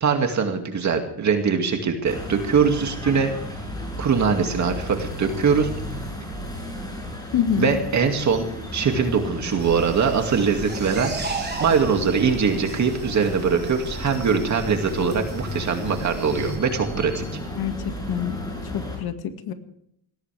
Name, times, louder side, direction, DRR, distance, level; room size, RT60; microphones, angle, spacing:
voice 1, 0.0-3.3 4.0-5.7 7.6-8.5 8.7-11.1 11.6-17.4, right 6 dB, 45° right, 4 dB, 2.4 m, -22 dB
sound 1, 2.0-19.0, left 1 dB, 10° left, 8.0 m, -34 dB
voice 2, 7.3-7.8 17.6-17.7 18.1-18.4 18.7-19.5, left 9 dB, 65° left, 7 dB, 2.1 m, -25 dB
sound 2, 9.6-16.6, right 3 dB, 25° right, 4.1 m, -35 dB
20.0 x 17.5 x 3.5 m, 0.73 s
cardioid pair, 125°, 40 cm